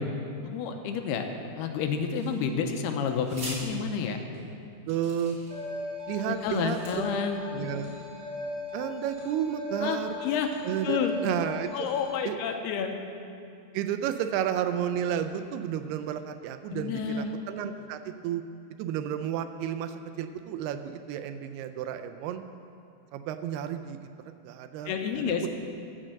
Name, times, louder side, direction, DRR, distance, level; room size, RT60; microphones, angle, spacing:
voice 1, 0.4-1.3 1.6-4.2 6.2-7.4 9.8-10.5 10.8-11.2 11.7-12.9 16.7-17.3 24.9-25.5, left 6 dB, 80° left, 5 dB, 2.6 m, -30 dB
sound 1, 2.1-2.7 3.2-3.6 4.3-4.4 4.9-5.7 6.3-6.9, right 1 dB, 30° right, 3.4 m, -43 dB
voice 2, 4.9-5.4 6.1-6.8 7.5-7.9 8.7-10.2 10.6-11.9 12.3-12.4 13.7-18.4 18.8-22.4 23.1-24.0 24.4-25.5, right 9 dB, 80° right, 8 dB, 2.4 m, -32 dB
sound 2, 5.5-12.1, left 2 dB, 50° right, 4.9 m, -38 dB
14.0 x 6.3 x 7.6 m, 2.5 s
omnidirectional pair, 4.8 m